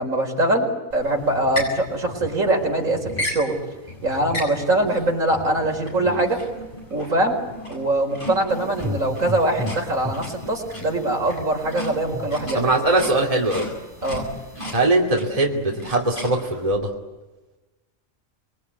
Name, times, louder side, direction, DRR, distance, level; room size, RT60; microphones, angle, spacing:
voice 1, 0.0-3.6 4.0-6.4 6.9-7.4 7.7-12.7 14.0-14.3, right 1 dB, 70° right, 2 dB, 4.9 m, -23 dB
sound 1, 0.9-16.7, left 1 dB, 35° left, 7.9 m, -36 dB
sound 2, 8.5-14.8, left 1 dB, ahead, 4.4 m, -36 dB
voice 2, 12.5-13.7 14.7-16.9, right 2 dB, 25° right, 0 dB, 2.9 m, -21 dB
27.5 x 22.0 x 9.6 m, 1.1 s
omnidirectional pair, 1.4 m